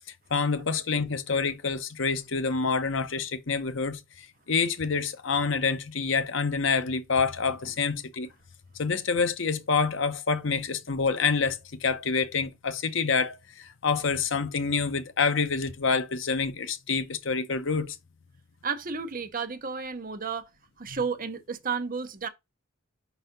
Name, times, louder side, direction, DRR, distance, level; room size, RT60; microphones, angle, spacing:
voice 1, 0.3-8.3 8.7-18.0 20.9-21.0, left 5 dB, 70° left, 0.8 m, -27 dB
voice 2, 18.6-20.5 20.8-22.3, right 5 dB, 45° right, 0.8 m, -32 dB
5.5 x 4.1 x 5.2 m
head